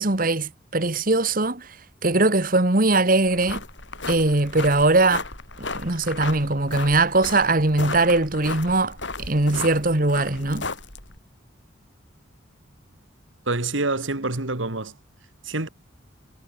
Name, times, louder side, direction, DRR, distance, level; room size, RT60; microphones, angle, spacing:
voice 1, 0.0-1.8 2.0-3.6 4.1-5.2 5.6-10.7, right 2 dB, 45° right, 1.9 m, -21 dB
sound 1, 3.3-11.2, left 3 dB, 70° left, 7.8 m, -35 dB
voice 2, 13.5-14.9 15.4-15.7, right 2 dB, 90° right, 2.5 m, -26 dB
head